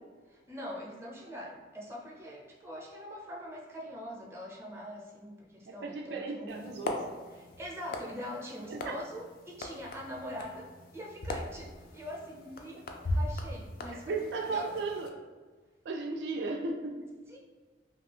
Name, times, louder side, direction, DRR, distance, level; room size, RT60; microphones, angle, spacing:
voice 1, 0.3-6.8 7.3-14.8 17.3-17.4, equal, 15° right, -3 dB, 0.5 m, -43 dB
voice 2, 5.7-7.0 8.7-9.0 13.9-15.1 15.8-17.1, right 3 dB, 70° right, 3 dB, 0.3 m, -35 dB
sound 1, 6.5-15.1, left 1 dB, 55° left, 0.4 m, -39 dB
2.7 x 2.3 x 3.3 m, 1.4 s
head